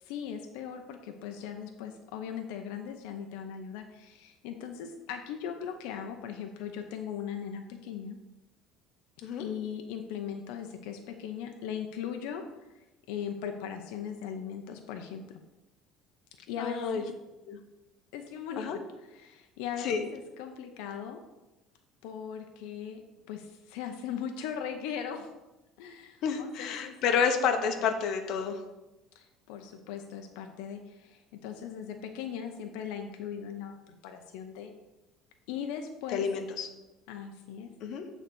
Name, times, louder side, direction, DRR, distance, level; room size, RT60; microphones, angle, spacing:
voice 1, 0.0-8.2 9.2-12.4 12.7-15.2 16.5-17.1 18.1-18.8 19.1-21.2 22.0-23.0 23.3-25.3 25.8-27.9 29.1-34.7 35.5-36.2 37.1-37.7, left 8 dB, 80° left, 5 dB, 0.7 m, -39 dB
voice 2, 16.6-17.0 17.5-17.6 18.6-18.8 19.8-20.1 26.2-28.6 36.1-36.7 37.8-38.0, left 6 dB, 55° left, 5 dB, 0.9 m, -29 dB
8.2 x 4.0 x 6.1 m, 1.0 s
cardioid pair, 155°, 0 cm